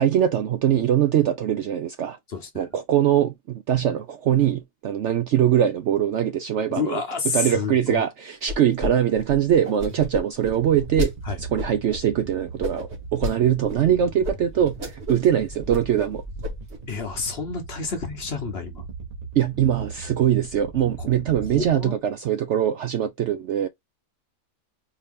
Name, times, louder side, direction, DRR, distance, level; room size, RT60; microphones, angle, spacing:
voice 1, 0.0-2.2 2.5-7.0 7.3-11.1 11.4-16.2 19.4-23.7, right 10 dB, 70° right, 0.7 m, -22 dB
voice 2, 2.3-2.7 6.7-8.1 11.2-11.4 16.9-18.8 21.0-21.1 21.5-22.0, left 5 dB, 50° left, 0.9 m, -29 dB
sound 1, 8.5-8.9 9.2-11.1 11.6-12.0 12.6-13.3 13.7-13.8 14.2-14.3 14.7-15.3 15.5-16.1 16.4-16.8, left 1 dB, 45° right, 1.9 m, -30 dB
sound 2, 10.4-22.0, right 4 dB, 30° right, 1.0 m, -39 dB
4.3 x 2.8 x 3.5 m
omnidirectional pair, 1.6 m